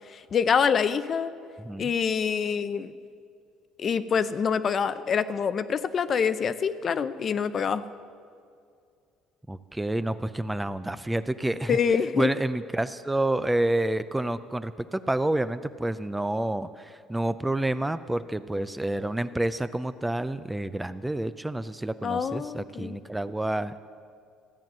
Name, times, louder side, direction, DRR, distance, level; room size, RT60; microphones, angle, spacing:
voice 1, 0.1-1.3 1.8-2.9 3.8-7.8 11.7-12.3 22.0-23.0, left 6 dB, 40° left, 13 dB, 0.6 m, -26 dB
voice 2, 1.6-1.9 9.5-11.8 12.1-23.8, right 1 dB, 10° right, 12 dB, 0.4 m, -29 dB
14.0 x 9.1 x 7.5 m, 2.3 s
cardioid pair, 105°, 0 cm